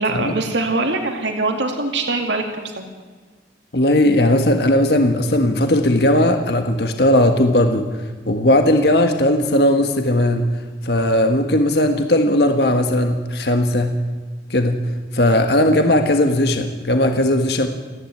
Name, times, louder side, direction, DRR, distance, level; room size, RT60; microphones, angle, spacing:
voice 1, 0.0-2.9, right 2 dB, 90° right, 3 dB, 2.5 m, -23 dB
voice 2, 3.7-7.9 8.3-10.5 10.8-13.9 14.5-14.8 15.1-17.7, left 1 dB, 65° left, 5 dB, 1.5 m, -17 dB
29.0 x 10.5 x 9.6 m, 1.5 s
head